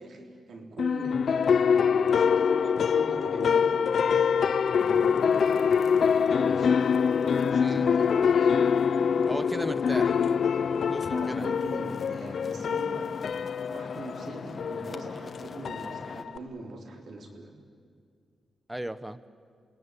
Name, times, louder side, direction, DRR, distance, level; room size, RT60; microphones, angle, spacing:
voice 1, 0.0-3.9 4.7-5.5 6.0-6.9 7.2-8.6 9.8-10.0 11.1-13.1 13.7-17.5, right 2 dB, 60° right, 3 dB, 3.7 m, -42 dB
sound 1, 0.8-16.4, left 6 dB, 55° left, 0.6 m, -25 dB
sound 2, 4.8-16.2, left 4 dB, 35° left, 1.2 m, -43 dB
voice 2, 9.3-10.1 10.9-11.6 18.7-19.2, right 1 dB, 10° right, 14 dB, 0.8 m, -35 dB
28.5 x 18.0 x 9.7 m, 2.1 s
wide cardioid pair, 140°, 0 cm